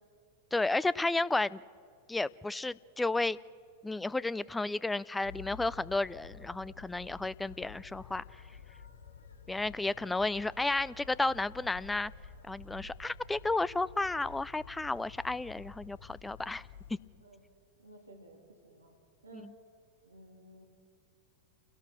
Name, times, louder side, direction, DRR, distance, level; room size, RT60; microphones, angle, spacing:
voice 1, 0.5-1.6 2.1-3.4 3.8-8.2 9.5-12.1 12.5-16.7, left 2 dB, 10° left, 21 dB, 0.4 m, -32 dB
sound 1, 5.2-16.9, left 5 dB, 70° left, 2.3 m, -51 dB
voice 2, 17.8-18.9 19.2-19.5 20.0-20.7, right 1 dB, 90° right, 3 dB, 3.3 m, -54 dB
28.0 x 17.5 x 6.1 m, 2.4 s
figure-of-eight pair, 95°, 0 cm